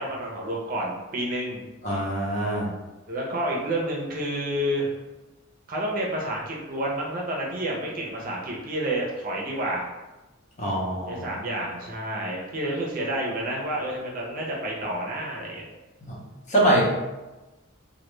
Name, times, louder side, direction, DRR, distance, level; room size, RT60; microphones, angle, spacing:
voice 1, 0.0-1.6 3.1-4.9 5.7-9.9 11.1-15.7, right 1 dB, 45° right, -3 dB, 0.5 m, -29 dB
voice 2, 1.8-2.7 10.6-11.2 16.0-16.2 16.5-16.9, right 1 dB, 35° left, -5 dB, 0.7 m, -24 dB
2.2 x 2.2 x 3.0 m, 1.1 s
head